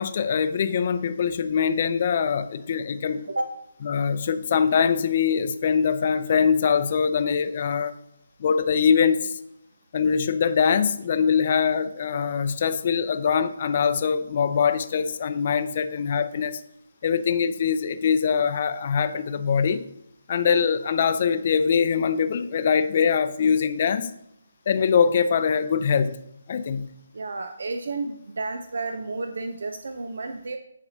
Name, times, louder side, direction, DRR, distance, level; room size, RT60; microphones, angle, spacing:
voice 1, 0.0-3.2 3.8-7.9 8.4-9.4 9.9-16.6 17.0-19.8 20.3-24.1 24.7-26.2 26.5-26.9, left 6 dB, 40° left, 0.5 m, -23 dB
voice 2, 27.1-30.6, right 3 dB, 70° right, 0.5 m, -31 dB
9.7 x 4.2 x 2.8 m
figure-of-eight pair, 155°, 0 cm